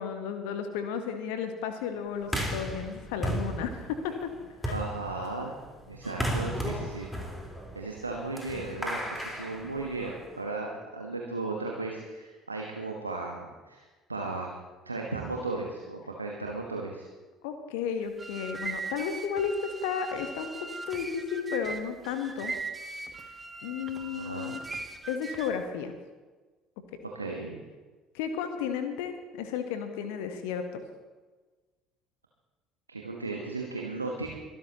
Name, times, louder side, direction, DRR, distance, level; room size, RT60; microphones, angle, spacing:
voice 1, 0.0-4.3 4.6-4.8 17.4-22.5 23.6-24.6 25.1-25.9 28.1-30.8, left 7 dB, 65° left, 7 dB, 1.2 m, -33 dB
sound 1, 2.2-10.4, right 1 dB, 5° left, 4.1 m, -35 dB
voice 2, 4.7-5.6 5.9-7.1 7.7-13.8 14.1-14.5 14.8-17.1 24.1-24.5 27.1-27.6 32.9-34.3, right 3 dB, 85° right, 0 dB, 1.3 m, -35 dB
sound 2, 18.0-25.7, right 3 dB, 20° right, 1.4 m, -40 dB
23.5 x 13.0 x 3.0 m, 1.3 s
figure-of-eight pair, 55°, 0 cm